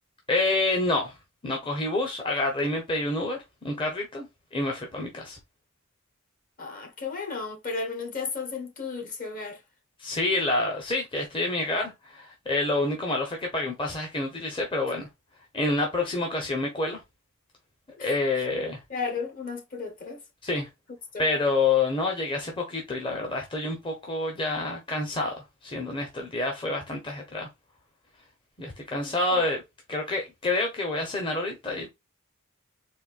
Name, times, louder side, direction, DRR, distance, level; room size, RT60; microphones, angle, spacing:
voice 1, 0.3-1.2 1.4-5.4 10.0-15.1 15.5-17.0 18.0-18.8 20.4-20.7 21.2-27.5 28.6-29.6 29.9-31.9, left 2 dB, 25° left, 0.9 m, -28 dB
voice 2, 6.6-9.6 18.0-18.1 18.9-20.2 21.1-21.3 29.0-29.4, left 4 dB, 40° left, 1.1 m, -34 dB
4.3 x 2.7 x 2.4 m
head